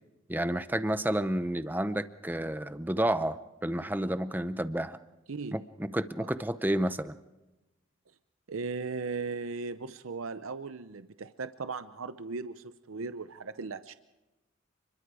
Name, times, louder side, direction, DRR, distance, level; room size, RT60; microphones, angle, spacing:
voice 1, 0.3-5.0 5.5-7.2, right 1 dB, 10° right, 12 dB, 0.6 m, -30 dB
voice 2, 8.5-13.9, right 4 dB, 85° right, 12 dB, 0.7 m, -37 dB
29.5 x 21.5 x 4.8 m, 1.0 s
head